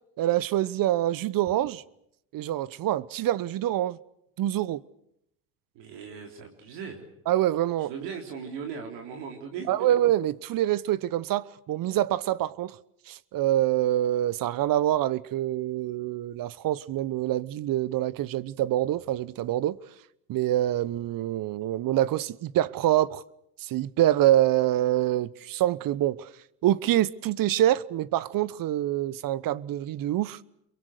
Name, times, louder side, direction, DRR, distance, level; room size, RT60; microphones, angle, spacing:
voice 1, 0.2-1.8 2.3-4.0 4.4-4.8 7.3-7.9 9.7-12.8 13.1-19.8 20.3-23.2 23.6-26.3 26.6-30.4, right 13 dB, 50° right, 1.0 m, -25 dB
voice 2, 5.7-7.1 7.8-9.9, right 6 dB, 65° right, 3.8 m, -38 dB
26.5 x 23.0 x 6.4 m
hypercardioid pair, 75°, 45 cm